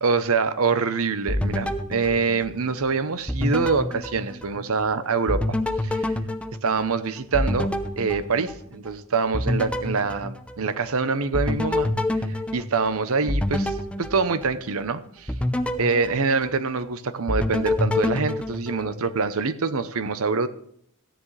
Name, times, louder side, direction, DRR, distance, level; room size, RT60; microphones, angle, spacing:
voice 1, 0.0-6.1 6.6-7.7 8.0-12.2 12.5-15.3 15.8-20.5, right 4 dB, 65° right, 13 dB, 0.8 m, -25 dB
sound 1, 1.3-2.9 3.3-4.9 5.3-8.9 9.3-10.9 11.3-14.8 15.3-16.9 17.3-19.2, left 1 dB, 5° left, 0.8 m, -28 dB
15.0 x 10.0 x 3.3 m, 0.67 s
head